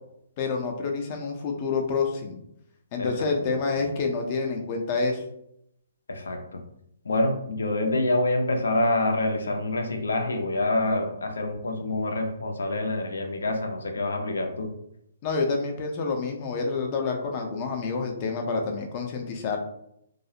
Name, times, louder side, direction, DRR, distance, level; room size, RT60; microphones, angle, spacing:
voice 1, 0.4-2.4 2.9-5.2 15.2-19.6, left 4 dB, 35° left, 2 dB, 0.5 m, -28 dB
voice 2, 6.1-6.6 7.0-14.7, left 2 dB, 85° left, 4 dB, 0.5 m, -26 dB
2.3 x 2.0 x 2.7 m, 0.75 s
hypercardioid pair, 145°, 0 cm